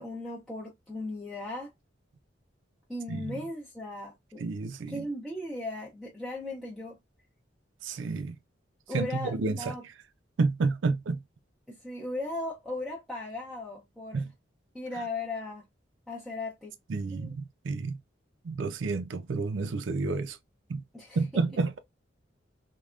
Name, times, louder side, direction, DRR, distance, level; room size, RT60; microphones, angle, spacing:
voice 1, 0.0-1.7 2.9-4.4 4.9-7.0 8.9-9.8 11.7-14.2 14.7-15.6 16.1-16.7 17.1-17.3 20.9-21.2, left 2 dB, ahead, 0.6 m, -37 dB
voice 2, 3.1-3.4 4.4-5.1 7.8-8.4 8.9-9.7 10.4-11.2 14.1-14.3 16.9-18.0 18.4-20.4 20.7-20.8 21.2-21.8, right 3 dB, 85° right, 0.4 m, -30 dB
3.3 x 2.2 x 2.4 m
head